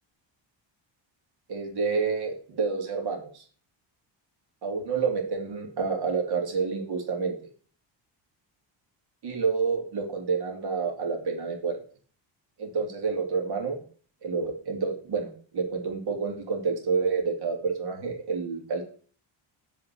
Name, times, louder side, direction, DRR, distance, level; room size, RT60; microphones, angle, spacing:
voice 1, 1.5-3.4 4.6-7.3 9.2-11.7 12.6-13.8 14.2-18.9, right 5 dB, 55° right, 1 dB, 3.2 m, -29 dB
8.8 x 4.9 x 7.7 m, 0.42 s
cardioid pair, 155°, 46 cm